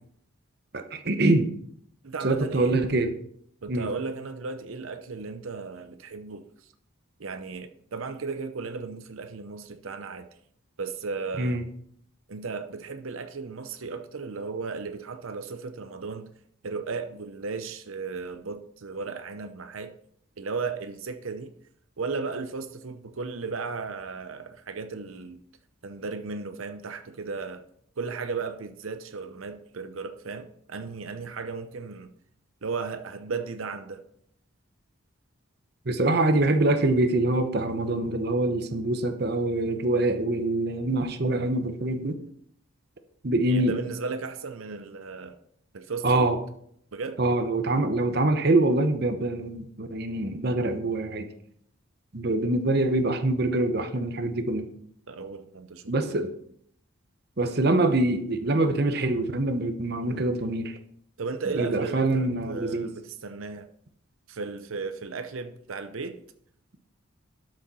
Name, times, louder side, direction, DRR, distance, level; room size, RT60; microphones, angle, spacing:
voice 1, 0.7-1.5 2.2-3.1 3.7-3.9 11.4-11.6 35.9-42.2 43.2-43.8 46.0-46.4 47.2-51.3 52.1-54.6 55.9-56.3 57.4-60.8 61.6-62.9, right 2 dB, 50° right, 8 dB, 0.9 m, -24 dB
voice 2, 2.0-2.8 3.6-6.7 7.2-10.3 10.8-11.6 12.3-16.3 16.6-19.9 20.4-21.5 22.0-25.4 25.8-27.6 28.0-32.1 32.6-34.0 43.5-45.4 45.7-46.3 46.9-47.2 55.1-56.2 60.0-60.4 61.2-63.7 64.3-66.2, right 4 dB, 85° right, 8 dB, 0.8 m, -35 dB
12.5 x 6.4 x 4.2 m, 0.67 s
head